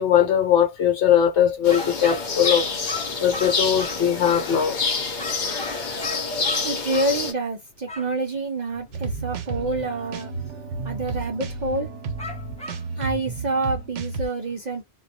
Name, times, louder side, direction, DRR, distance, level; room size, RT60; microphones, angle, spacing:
voice 1, 0.0-2.6 3.2-4.8, left 9 dB, 75° left, 1.0 m, -20 dB
sound 1, 1.6-7.3, left 4 dB, 55° left, 0.6 m, -27 dB
sound 2, 1.7-4.6 5.2-7.2 7.9-8.1 12.2-12.8, left 1 dB, 10° left, 0.4 m, -35 dB
voice 2, 6.6-10.3 10.8-11.9 13.0-14.8, right 2 dB, 55° right, 0.5 m, -27 dB
sound 3, 8.9-14.3, right 4 dB, 90° right, 0.9 m, -32 dB
2.2 x 2.1 x 2.7 m
omnidirectional pair, 1.2 m